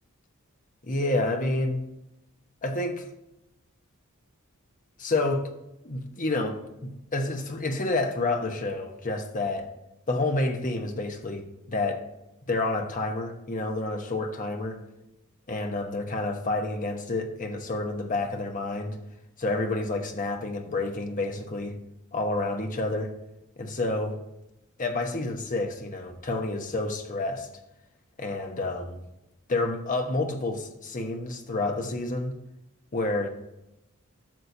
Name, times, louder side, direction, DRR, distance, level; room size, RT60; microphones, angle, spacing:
voice 1, 0.8-1.8 2.6-3.1 5.0-5.5 5.8-9.7 10.1-12.0 12.5-14.8 15.5-19.0 19.4-21.8 22.1-23.1 23.6-24.2 24.8-27.5 28.2-29.0 29.5-32.4 32.9-33.3, left 2 dB, 40° left, 1.1 m, -29 dB
12.5 x 6.5 x 2.8 m
head